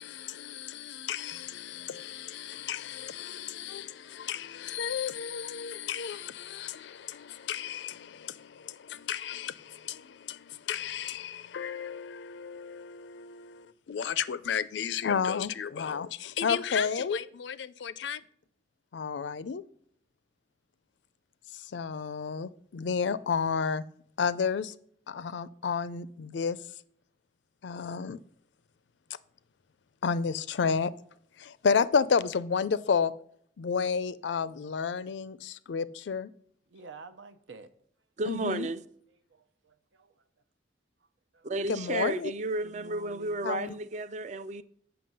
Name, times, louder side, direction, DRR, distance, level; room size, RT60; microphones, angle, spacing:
voice 1, 0.0-18.2 18.9-19.6 21.5-23.8 24.2-24.7 25.1-26.6 27.6-28.2 30.0-30.9 31.4-33.1 33.6-36.3 38.3-38.7 41.7-42.3 43.4-43.8, left 6 dB, 70° left, 0.4 m, -32 dB
voice 2, 36.7-37.7 39.3-40.2 41.3-41.5 42.6-43.5 43.9-44.0, right 3 dB, 85° right, 0.7 m, -50 dB
voice 3, 38.2-38.8 41.4-44.6, right 2 dB, 40° right, 0.4 m, -32 dB
7.6 x 5.9 x 5.4 m
head